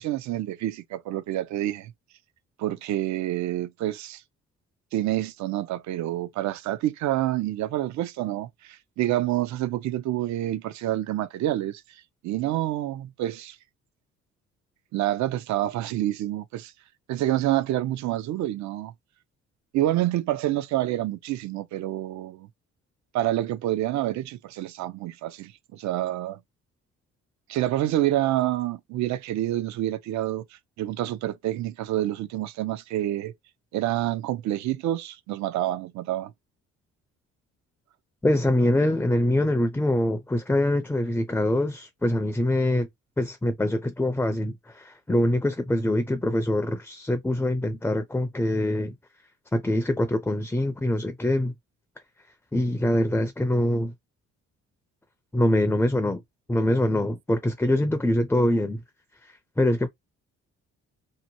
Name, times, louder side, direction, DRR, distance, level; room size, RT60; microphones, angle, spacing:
voice 1, 0.0-1.9 2.6-4.2 4.9-11.8 12.2-13.6 14.9-16.7 17.1-18.9 19.7-22.5 23.1-26.4 27.5-30.4 30.8-33.3 33.7-36.3, right 14 dB, 70° right, 0.5 m, -27 dB
voice 2, 38.2-42.9 43.2-48.9 49.5-51.5 52.5-53.9 55.3-56.2 56.5-58.8 59.2-59.9, left 1 dB, 5° left, 0.4 m, -24 dB
2.8 x 2.1 x 2.7 m
cardioid pair, 90°, 30 cm